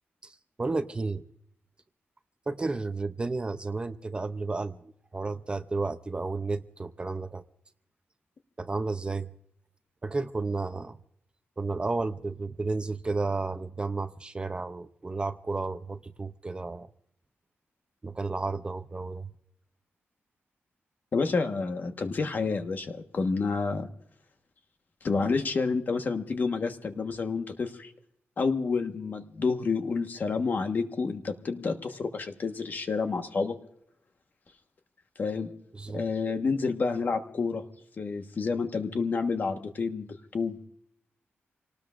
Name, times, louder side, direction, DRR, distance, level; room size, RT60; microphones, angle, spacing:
voice 1, 0.2-1.2 2.5-7.4 8.6-9.3 10.0-11.0 11.6-16.9 18.0-19.3 35.7-36.0, right 3 dB, 20° right, 10 dB, 0.5 m, -32 dB
voice 2, 21.1-23.9 25.0-27.9 28.4-33.6 35.2-35.5 35.9-37.6 38.0-40.6, left 4 dB, 45° left, 6 dB, 1.3 m, -29 dB
28.0 x 18.5 x 2.5 m, 0.71 s
wide cardioid pair, 160°, 5 cm